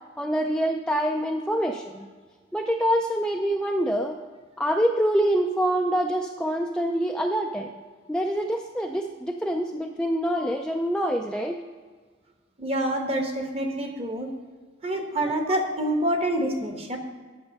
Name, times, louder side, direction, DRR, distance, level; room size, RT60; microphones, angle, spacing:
voice 1, 0.2-2.1 2.5-4.2 4.6-7.7 8.1-11.6, equal, 5° left, 2 dB, 0.3 m, -25 dB
voice 2, 12.6-14.3 14.8-17.0, right 1 dB, 30° right, 4 dB, 1.0 m, -27 dB
9.5 x 6.6 x 5.2 m, 1.5 s
head